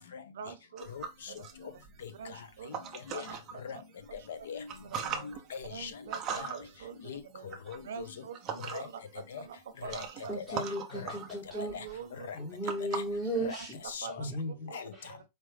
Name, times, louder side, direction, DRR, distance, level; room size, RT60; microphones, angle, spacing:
voice 1, 0.3-0.9 1.3-1.8 2.1-2.7 3.1-3.8 4.2-4.3 4.8-5.3 5.7-7.5 7.8-8.8 9.4-10.4 10.9-11.1 11.5-12.3 13.2-14.8 15.1-15.2, right 7 dB, 80° right, 0.7 m, -45 dB
sound 1, 0.8-3.5 4.0-9.1 9.4-13.9, right 6 dB, 20° right, 0.6 m, -41 dB
voice 2, 0.9-1.3 2.0-2.1 3.1-3.2 3.6-3.8 4.3-4.7 5.2-5.9 6.3-6.5 7.1-8.1 8.7-8.9 9.3-9.4 9.8-10.0 10.4-10.6 10.9-11.1 11.7-11.8 12.3-12.4 12.9-13.0 13.4-13.6 13.9-14.1 14.7-14.9, left 7 dB, 90° left, 0.8 m, -41 dB
voice 3, 10.3-11.7 12.3-13.8 14.2-14.7 15.0-15.1, equal, 10° left, 0.9 m, -35 dB
4.5 x 2.5 x 3.2 m
supercardioid pair, 170°, 0 cm